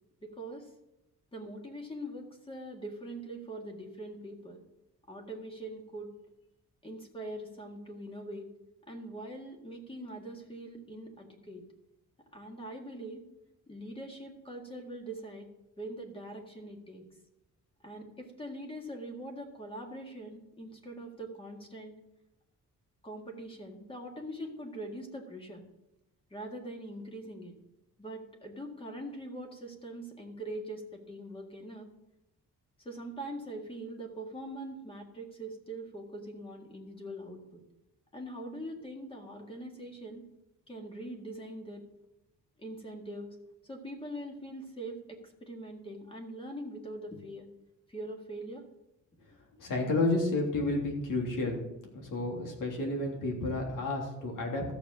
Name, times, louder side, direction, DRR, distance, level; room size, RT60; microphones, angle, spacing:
voice 1, 0.2-0.7 1.3-4.6 5.1-6.1 6.8-8.5 8.9-11.7 12.3-13.2 13.7-15.5 15.8-17.0 17.8-21.9 23.0-25.6 26.3-27.5 28.0-31.9 32.8-37.6 38.1-40.2 40.7-41.8 42.6-43.4 43.6-47.5 47.9-48.6, right 1 dB, 15° left, 2 dB, 1.9 m, -42 dB
voice 2, 49.6-51.6 51.9-54.6, left 2 dB, 75° left, 1 dB, 3.4 m, -31 dB
13.5 x 7.2 x 6.2 m, 0.93 s
wide cardioid pair, 165°, 32 cm